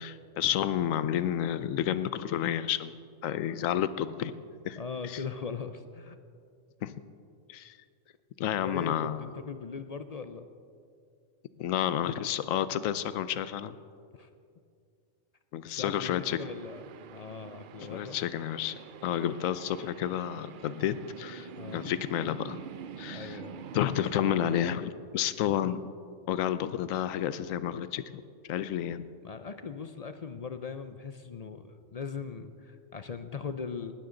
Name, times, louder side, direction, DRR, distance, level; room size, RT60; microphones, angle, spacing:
voice 1, 0.0-2.9 3.2-4.3 4.7-4.8 5.1-5.2 6.8-6.9 7.5-7.7 8.4-9.2 11.6-13.7 15.5-16.4 17.9-18.7 19.0-22.6 23.0-23.4 23.7-25.8 26.3-28.2 28.5-29.1, left 10 dB, 90° left, 14 dB, 1.0 m, -30 dB
voice 2, 4.8-6.2 8.6-10.5 14.1-14.3 15.6-18.2 21.6-21.9 23.1-23.6 29.2-33.9, left 5 dB, 50° left, 9 dB, 0.4 m, -40 dB
sound 1, 16.0-24.7, right 9 dB, 65° right, 0.5 m, -46 dB
19.0 x 13.5 x 3.9 m, 2.3 s
omnidirectional pair, 1.3 m